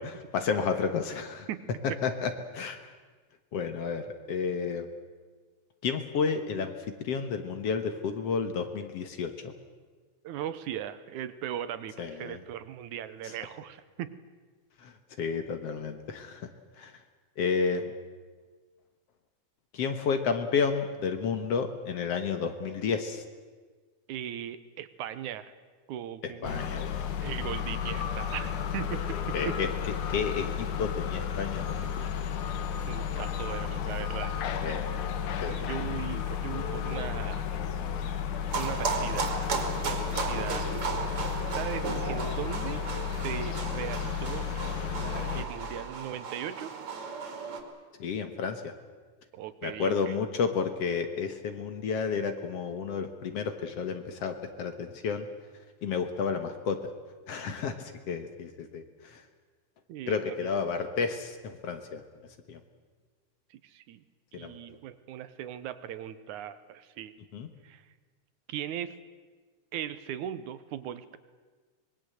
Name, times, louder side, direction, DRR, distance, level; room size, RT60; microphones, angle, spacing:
voice 1, 0.0-1.5 1.8-2.9 3.5-4.9 5.8-9.5 12.0-12.4 13.2-13.3 14.8-16.5 16.8-16.9 17.4-17.9 19.7-23.2 26.2-27.1 29.3-32.1 34.6-35.0 35.4-35.5 40.3-40.5 48.0-48.7 49.6-55.3 55.8-56.9 57.3-59.2 60.1-62.0 62.5-62.6 64.3-64.6 67.3-67.5, left 5 dB, 60° left, 8 dB, 2.1 m, -31 dB
voice 2, 10.2-14.2 24.1-25.5 25.9-26.7 27.2-29.6 32.9-34.5 35.5-37.5 38.6-39.3 39.8-40.7 41.5-42.8 43.2-44.5 44.9-46.7 49.3-50.2 59.9-60.3 63.5-64.0 64.3-67.1 67.6-67.8 68.5-69.0 69.7-71.2, right 10 dB, 75° right, 13 dB, 2.3 m, -38 dB
sound 1, 26.4-45.4, left 8 dB, 75° left, 2.8 m, -33 dB
sound 2, 38.5-47.6, right 5 dB, 45° right, 3.2 m, -35 dB
25.0 x 20.5 x 7.8 m, 1.4 s
omnidirectional pair, 3.6 m